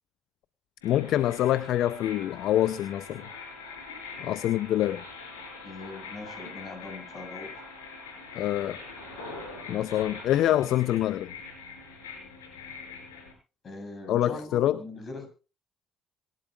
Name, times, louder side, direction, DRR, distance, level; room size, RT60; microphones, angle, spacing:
sound 1, 0.8-13.3, left 4 dB, 85° left, 5.5 m, -43 dB
voice 1, 0.8-3.3 4.2-5.0 8.3-8.8 9.7-11.3 14.1-14.8, left 12 dB, 65° left, 16 dB, 0.6 m, -25 dB
voice 2, 5.6-7.6 13.6-15.3, left 3 dB, 45° left, 5 dB, 7.2 m, -41 dB
26.5 x 11.5 x 2.5 m, 0.33 s
hypercardioid pair, 50°, 0 cm